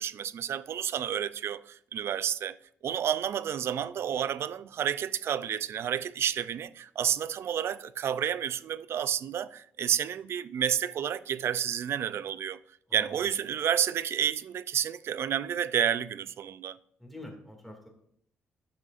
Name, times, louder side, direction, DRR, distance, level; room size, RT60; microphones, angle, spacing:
voice 1, 0.0-2.6 2.8-12.6 12.9-16.8, right 9 dB, 65° right, 0.4 m, -30 dB
voice 2, 12.9-13.3 17.0-17.9, left 1 dB, ahead, 2.3 m, -46 dB
11.5 x 6.2 x 2.5 m
cardioid pair, 75°, 5 cm